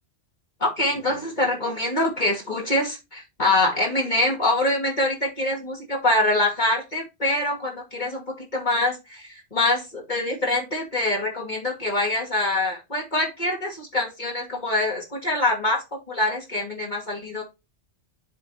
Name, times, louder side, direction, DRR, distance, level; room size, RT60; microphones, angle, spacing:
voice 1, 0.6-17.4, left 2 dB, 40° left, -1 dB, 2.7 m, -24 dB
7.3 x 4.3 x 4.8 m, 0.24 s
omnidirectional pair, 1.2 m